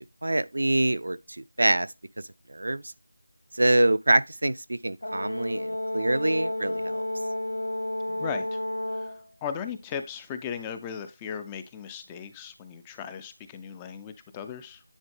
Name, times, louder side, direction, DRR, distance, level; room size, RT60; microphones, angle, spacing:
voice 1, 0.2-1.9 2.5-2.9 3.5-7.1, right 1 dB, 65° right, 0.4 m, -25 dB
Brass instrument, 5.0-9.2, left 1 dB, 80° left, 0.5 m, -31 dB
voice 2, 8.1-8.6 8.9-9.1 9.4-14.8, left 7 dB, 10° left, 0.4 m, -37 dB
9.9 x 3.7 x 3.5 m
figure-of-eight pair, 170°, 0 cm